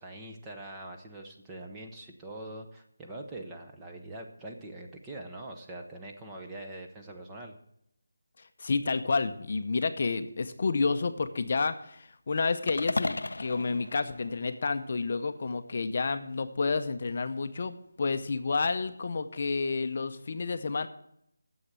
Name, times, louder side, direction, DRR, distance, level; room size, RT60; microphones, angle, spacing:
voice 1, 0.0-7.6, right 1 dB, 10° right, 1 dB, 0.8 m, -43 dB
voice 2, 8.4-20.9, left 4 dB, 40° left, 9 dB, 0.6 m, -30 dB
sound 1, 12.7-15.0, left 2 dB, 85° left, 0.5 m, -35 dB
9.7 x 7.3 x 7.4 m, 0.75 s
figure-of-eight pair, 175°, 0 cm